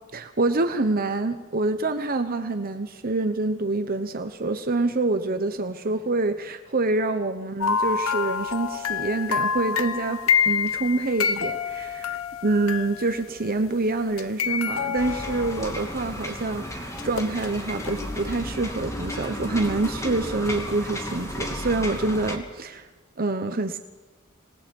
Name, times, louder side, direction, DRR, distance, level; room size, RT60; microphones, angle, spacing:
voice 1, 0.1-22.9 23.2-23.8, right 2 dB, 45° right, 8 dB, 1.0 m, -26 dB
sound 1, 7.6-13.5 14.1-16.2 17.0-18.0 18.3-18.4, left 6 dB, 70° left, 0.9 m, -27 dB
sound 2, 15.0-22.4, left 1 dB, 15° left, 2.8 m, -33 dB
27.0 x 19.5 x 5.4 m, 1.3 s
head